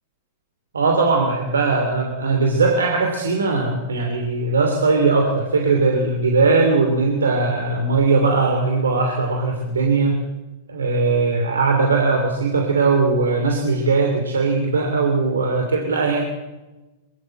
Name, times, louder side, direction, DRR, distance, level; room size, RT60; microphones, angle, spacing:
voice 1, 0.7-10.2 10.7-16.2, right 3 dB, 85° right, 3 dB, 2.9 m, -19 dB
23.0 x 15.0 x 7.7 m, 1.1 s
hypercardioid pair, 105°, 0 cm